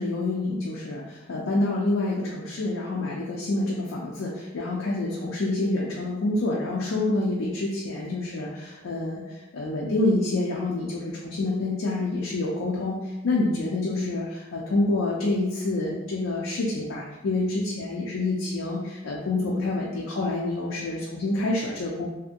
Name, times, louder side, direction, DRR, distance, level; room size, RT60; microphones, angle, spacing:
voice 1, 0.0-22.1, left 2 dB, 80° left, -3 dB, 0.4 m, -27 dB
2.7 x 2.5 x 2.4 m, 1.1 s
head